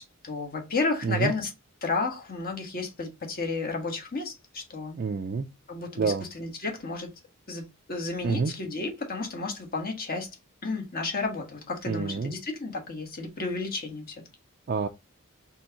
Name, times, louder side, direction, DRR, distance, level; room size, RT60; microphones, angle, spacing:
voice 1, 0.2-1.5 1.8-5.0 5.7-7.1 7.5-10.3 10.6-14.1, left 3 dB, 45° left, 1.4 m, -32 dB
voice 2, 5.0-5.5 6.0-6.2 8.2-8.5 11.9-12.3 14.7-14.9, right 4 dB, 45° right, 0.4 m, -27 dB
4.4 x 3.4 x 2.8 m
head